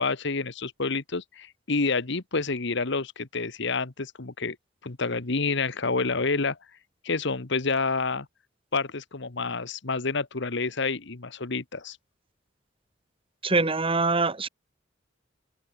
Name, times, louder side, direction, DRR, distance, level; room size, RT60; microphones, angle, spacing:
voice 1, 0.0-4.6 4.8-6.6 7.0-8.3 8.7-12.0, left 4 dB, 65° left, 1.4 m, -28 dB
voice 2, 13.4-14.5, right 3 dB, 30° right, 1.8 m, -24 dB
open air
head